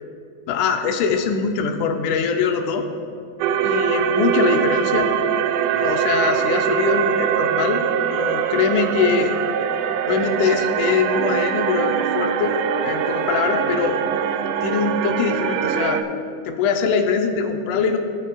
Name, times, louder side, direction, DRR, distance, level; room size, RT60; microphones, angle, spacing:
voice 1, 0.5-2.9 3.6-5.1 5.7-9.4 10.1-12.6 12.8-14.0 14.6-16.1 16.5-18.0, left 5 dB, 85° left, 5 dB, 1.7 m, -22 dB
sound 1, 3.4-16.0, right 9 dB, 85° right, 2.4 m, -22 dB
sound 2, 5.4-15.7, left 2 dB, 65° left, 2.4 m, -44 dB
20.0 x 7.3 x 2.3 m, 2.5 s
omnidirectional pair, 4.3 m